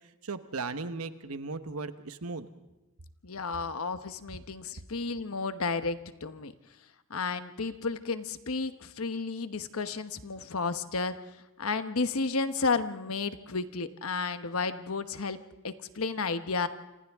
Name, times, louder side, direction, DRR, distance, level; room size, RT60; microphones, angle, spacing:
voice 1, 0.2-2.5, right 3 dB, 85° right, 10 dB, 1.1 m, -36 dB
voice 2, 3.2-6.5 7.1-15.4 15.6-16.7, left 4 dB, 75° left, 10 dB, 1.1 m, -32 dB
29.0 x 26.5 x 3.6 m, 1.0 s
head